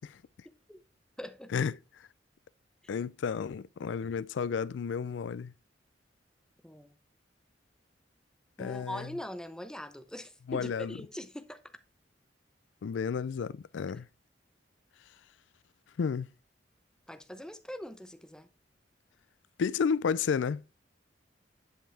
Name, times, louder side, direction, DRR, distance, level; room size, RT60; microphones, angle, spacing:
voice 1, 0.4-0.8 1.2-1.5 6.6-7.0 8.6-11.6 17.1-18.5, left 1 dB, 5° left, 0.7 m, -42 dB
voice 2, 2.9-5.5 8.6-9.1 10.5-10.9 12.8-14.1 16.0-16.3 19.6-20.6, left 6 dB, 85° left, 0.4 m, -31 dB
10.0 x 5.5 x 3.4 m
head